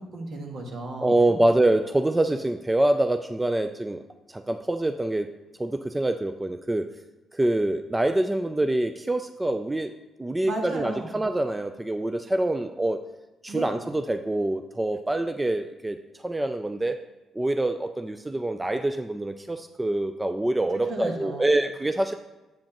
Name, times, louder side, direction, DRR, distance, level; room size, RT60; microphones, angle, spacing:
voice 1, 0.0-1.4 10.5-11.2 13.5-13.6 20.9-21.5, right 2 dB, 65° right, 1 dB, 1.5 m, -34 dB
voice 2, 1.0-4.0 4.3-5.3 5.6-6.9 7.3-9.9 10.2-13.0 13.4-16.0 16.2-17.0 17.4-22.1, right 1 dB, 15° right, 8 dB, 0.3 m, -25 dB
7.7 x 7.3 x 3.0 m, 1.1 s
cardioid pair, 90°, 0 cm